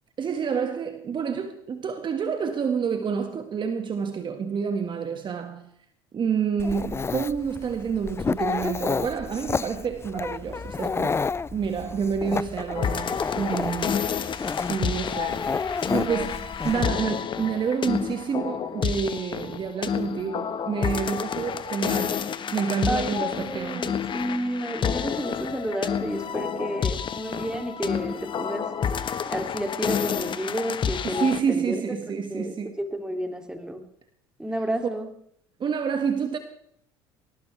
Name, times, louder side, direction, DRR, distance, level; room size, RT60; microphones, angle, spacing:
voice 1, 0.2-5.7 6.1-11.2 11.5-22.2 22.5-23.9 31.0-32.8 35.6-36.4, right 6 dB, 40° right, 1.9 m, -28 dB
Dog, 6.6-16.8, left 5 dB, 20° left, 0.5 m, -30 dB
sound 1, 12.7-31.4, left 7 dB, 40° left, 1.4 m, -29 dB
voice 2, 22.9-28.7 29.3-33.8 34.4-35.1, equal, 5° right, 2.9 m, -31 dB
20.5 x 19.0 x 3.5 m
hypercardioid pair, 70°, 13 cm